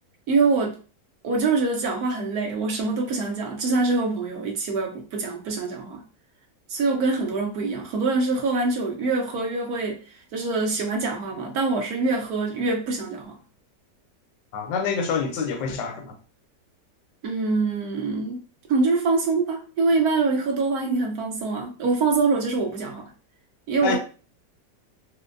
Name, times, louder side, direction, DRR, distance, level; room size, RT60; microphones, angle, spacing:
voice 1, 0.3-0.8 1.2-6.0 6.7-10.0 10.3-13.3 17.2-18.4 18.7-23.0 23.7-24.0, right 3 dB, 60° right, 1.3 m, -24 dB
voice 2, 14.5-16.1 23.8-24.0, left 5 dB, 75° left, 1.2 m, -26 dB
4.4 x 2.1 x 2.5 m
omnidirectional pair, 1.9 m